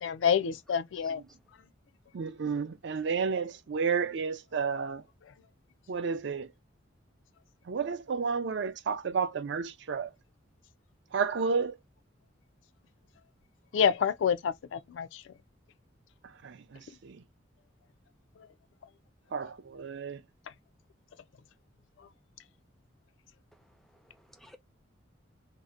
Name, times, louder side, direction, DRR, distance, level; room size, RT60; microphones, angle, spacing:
voice 1, 0.0-1.2 13.7-15.3 18.4-18.5 22.0-22.1, left 7 dB, 80° left, 0.3 m, -28 dB
voice 2, 2.1-5.0 5.9-6.5 7.7-10.1 11.1-11.8 16.2-17.2 19.3-20.2, right 5 dB, 65° right, 0.4 m, -31 dB
voice 3, 23.5-24.6, left 1 dB, ahead, 0.4 m, -58 dB
2.7 x 2.1 x 2.3 m
head